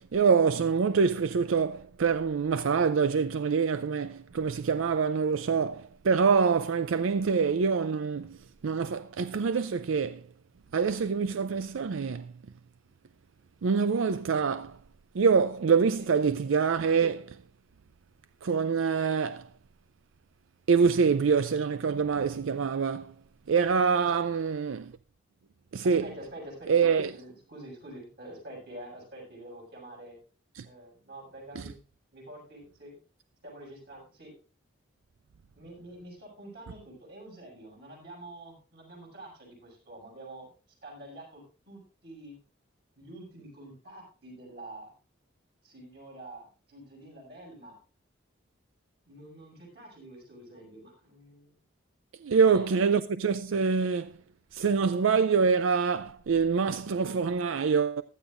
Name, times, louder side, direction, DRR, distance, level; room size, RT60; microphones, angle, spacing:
voice 1, 0.0-8.4 8.6-10.2 10.7-12.3 13.6-14.8 15.1-17.4 18.4-19.5 20.7-23.1 23.5-24.9 25.7-26.1 26.7-27.1 30.6-30.7 31.6-31.7 52.2-54.1 54.5-58.0, right 5 dB, 85° right, 0.5 m, -25 dB
voice 2, 23.9-24.5 25.8-26.8 27.1-30.2 30.6-31.8 32.1-33.0 33.4-34.3 35.6-40.5 40.8-42.4 43.0-44.9 45.6-47.8 49.1-51.5 52.5-52.7, right 1 dB, 55° right, 6.9 m, -47 dB
16.0 x 12.0 x 2.5 m
head